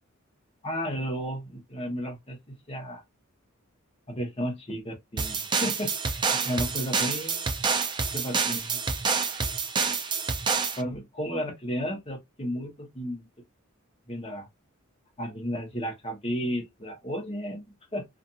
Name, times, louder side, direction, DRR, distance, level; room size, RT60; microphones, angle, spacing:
voice 1, 0.6-3.0 4.1-7.5 8.1-8.8 10.8-13.3 14.1-14.5 15.2-18.1, equal, 30° left, 0.9 m, -33 dB
sound 1, 5.2-10.8, right 5 dB, 20° right, 0.4 m, -28 dB
2.8 x 2.5 x 2.3 m
head